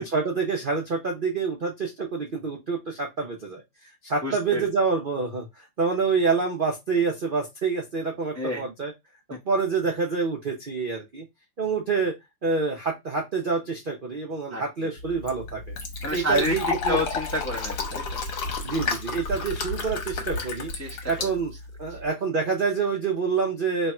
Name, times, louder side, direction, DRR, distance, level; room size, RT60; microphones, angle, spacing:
voice 1, 0.0-3.6 4.0-5.5 5.8-8.9 9.5-11.2 11.6-12.1 12.4-15.8 16.1-17.0 18.6-20.7 21.1-21.5 21.8-23.9, right 4 dB, 55° right, 0 dB, 0.5 m, -27 dB
voice 2, 4.2-4.7 8.3-8.7 9.3-9.4 14.5-14.9 16.0-16.6 16.9-18.2 20.7-21.3 21.9-22.0, left 1 dB, 15° left, -2 dB, 0.6 m, -30 dB
Fill (with liquid), 15.0-22.1, left 4 dB, 60° left, 1.5 m, -31 dB
3.3 x 2.4 x 4.2 m, 0.20 s
omnidirectional pair, 2.1 m